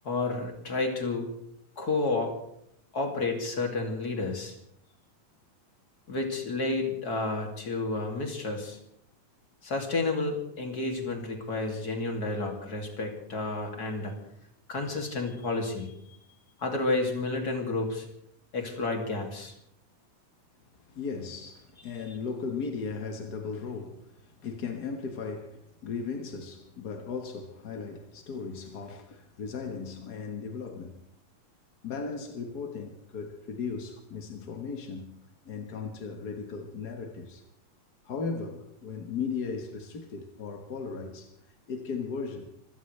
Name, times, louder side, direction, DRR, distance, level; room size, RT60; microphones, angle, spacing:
voice 1, 0.0-1.3 1.8-2.3 2.9-4.5 6.1-8.8 9.6-14.1 14.7-15.9 16.6-18.1 18.5-19.5, left 3 dB, 30° left, 2.9 m, -30 dB
voice 2, 20.9-31.0 31.8-35.2 35.4-37.4 38.0-41.3 41.7-42.5, left 5 dB, 50° left, 1.3 m, -37 dB
25.0 x 17.0 x 3.3 m
omnidirectional pair, 3.6 m